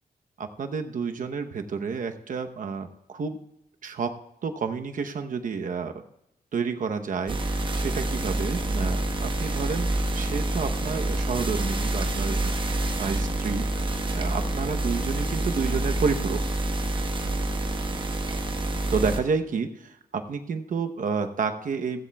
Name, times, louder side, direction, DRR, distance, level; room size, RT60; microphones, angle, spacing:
voice 1, 0.4-3.4 3.8-4.1 4.4-6.0 6.5-13.7 14.2-16.4 18.9-22.0, right 5 dB, 55° right, 7 dB, 0.9 m, -30 dB
sound 1, 7.3-19.2, right 1 dB, 30° right, 1.2 m, -27 dB
15.0 x 15.0 x 2.3 m, 0.84 s
wide cardioid pair, 145°, 16 cm